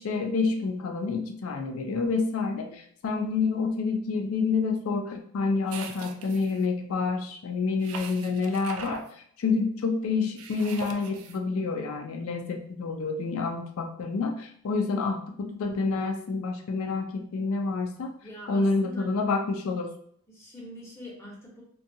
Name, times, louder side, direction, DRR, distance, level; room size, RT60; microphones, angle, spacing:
voice 1, 0.0-18.1 18.5-19.9, left 4 dB, 75° left, 3 dB, 0.4 m, -28 dB
sound 1, 5.7-6.6 7.8-9.1 10.4-11.4, right 4 dB, 75° right, 0.3 m, -40 dB
voice 2, 18.2-19.1 20.3-21.6, left 1 dB, 10° left, -5 dB, 0.7 m, -44 dB
2.6 x 2.2 x 2.6 m, 0.62 s
head